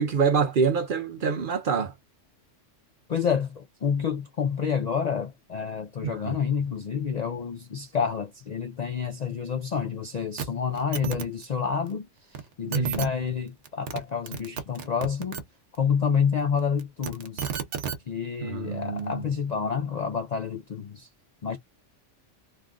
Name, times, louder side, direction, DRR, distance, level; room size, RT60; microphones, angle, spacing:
voice 1, 0.0-1.9 6.0-6.3 12.7-13.1 18.4-19.2, right 6 dB, 55° right, 0.7 m, -26 dB
voice 2, 3.1-15.4 15.8-17.5 18.1-21.1 21.4-21.6, left 6 dB, 55° left, 0.4 m, -28 dB
sound 1, 10.4-10.5 10.7-11.2 12.3-12.4 12.7-13.1 13.7-14.0 14.3-15.4 16.8-18.0 19.0-19.1, right 7 dB, 70° right, 1.1 m, -31 dB
3.3 x 2.3 x 3.6 m
omnidirectional pair, 1.3 m